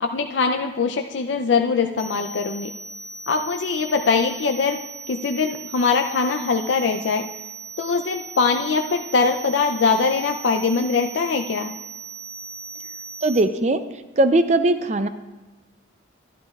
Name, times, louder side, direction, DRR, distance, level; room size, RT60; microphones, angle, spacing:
voice 1, 0.0-2.7 3.3-4.8 5.1-7.2 7.8-11.7, left 5 dB, 75° left, 5 dB, 0.4 m, -22 dB
sound 1, 2.0-13.4, right 5 dB, 55° right, 1.5 m, -38 dB
voice 2, 13.2-13.8 14.2-15.1, right 2 dB, 35° right, 10 dB, 0.5 m, -19 dB
12.5 x 11.5 x 2.3 m, 1.1 s
head